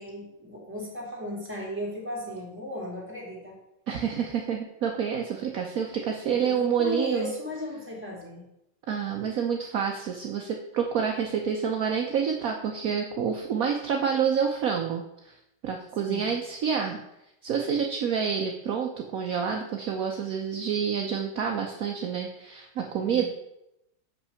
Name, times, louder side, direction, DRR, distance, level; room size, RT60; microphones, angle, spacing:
voice 1, 0.0-3.6 6.2-8.5 16.0-16.3 22.9-23.3, left 1 dB, 5° right, -3 dB, 2.5 m, -36 dB
voice 2, 3.9-7.3 8.9-15.3 15.6-17.0 17.4-23.2, right 7 dB, 65° right, 2 dB, 0.9 m, -28 dB
7.2 x 5.9 x 5.6 m, 0.85 s
omnidirectional pair, 2.4 m